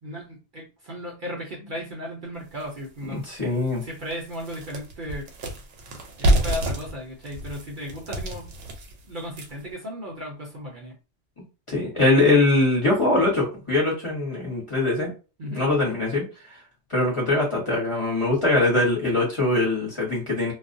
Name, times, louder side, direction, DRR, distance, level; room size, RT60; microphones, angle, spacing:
voice 1, 0.0-3.5 3.8-5.3 6.2-8.5 9.0-10.9 15.4-15.7, equal, 50° right, -2 dB, 0.7 m, -35 dB
sound 1, 2.6-2.7 3.2-3.3 3.7-9.7, right 1 dB, 85° right, 0.9 m, -28 dB
voice 2, 3.1-3.8 11.7-15.1 15.5-16.2 16.9-20.5, left 2 dB, 30° left, -4 dB, 1.0 m, -22 dB
2.3 x 2.1 x 2.6 m, 0.32 s
omnidirectional pair, 1.2 m